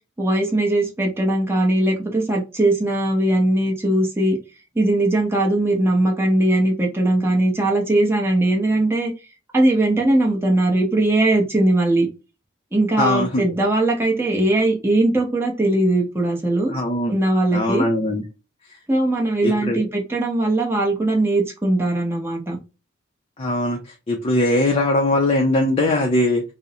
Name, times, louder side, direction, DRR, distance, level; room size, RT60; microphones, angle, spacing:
voice 1, 0.2-4.4 4.8-9.1 9.5-12.1 12.7-16.7 17.1-17.9 18.9-22.6, right 1 dB, 10° right, 0.7 m, -20 dB
voice 2, 13.0-13.5 16.7-17.2 17.5-18.2 19.4-19.8 23.4-26.4, left 1 dB, 30° left, 0.4 m, -20 dB
2.5 x 2.0 x 2.7 m
head